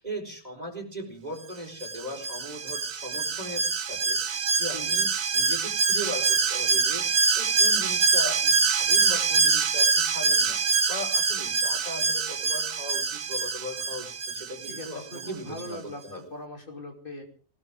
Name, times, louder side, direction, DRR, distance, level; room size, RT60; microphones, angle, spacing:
voice 1, 0.0-15.8 16.0-16.2, equal, 30° right, 2 dB, 4.4 m, -38 dB
Alarm, 1.8-15.3 15.6-15.7, right 5 dB, 80° right, 1.5 m, -25 dB
voice 2, 14.6-17.2, left 1 dB, 40° left, 1 dB, 3.3 m, -40 dB
19.5 x 19.5 x 3.6 m, 0.43 s
omnidirectional pair, 1.4 m